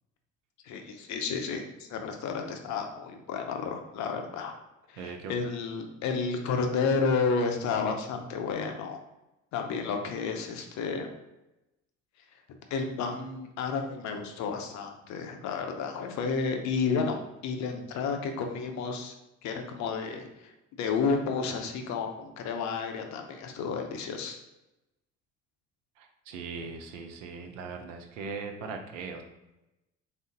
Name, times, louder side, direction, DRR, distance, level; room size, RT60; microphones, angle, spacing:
voice 1, 0.6-4.5 4.9-9.0 9.5-11.1 12.7-19.1 19.4-20.5 20.8-24.4, left 5 dB, 45° left, 4 dB, 0.6 m, -31 dB
voice 2, 5.0-5.3 26.0-29.2, right 4 dB, 70° right, 5 dB, 0.5 m, -39 dB
3.7 x 2.0 x 3.7 m, 0.95 s
figure-of-eight pair, 50°, 39 cm